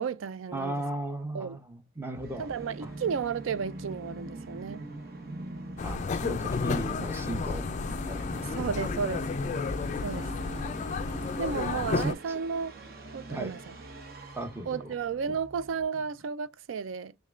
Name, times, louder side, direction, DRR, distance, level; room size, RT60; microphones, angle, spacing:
voice 1, 0.0-0.8 1.3-1.6 2.4-4.8 8.4-9.3 9.5-9.7 10.0-10.3 11.4-12.8 13.1-13.8 14.7-17.2, right 6 dB, 80° right, 0.4 m, -33 dB
voice 2, 0.5-2.5 2.8-2.9 5.8-7.7 8.0-8.8 11.7-12.2 13.3-13.5 14.3-14.8, right 2 dB, 10° right, 0.7 m, -36 dB
Musical instrument, 2.1-15.8, right 2 dB, 50° right, 1.0 m, -43 dB
sound 1, 5.8-12.1, left 4 dB, 35° left, 0.3 m, -32 dB
6.5 x 2.2 x 2.4 m
head